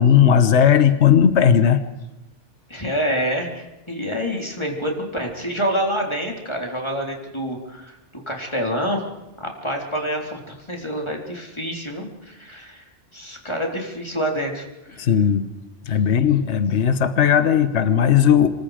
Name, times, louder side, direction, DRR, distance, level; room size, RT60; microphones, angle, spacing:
voice 1, 0.0-1.8 15.0-15.5 15.8-18.5, left 8 dB, 70° left, 11 dB, 1.4 m, -16 dB
voice 2, 2.7-9.0 9.4-12.8 13.1-15.1, equal, 25° left, 1 dB, 3.9 m, -27 dB
27.0 x 23.5 x 5.1 m, 1.0 s
omnidirectional pair, 1.2 m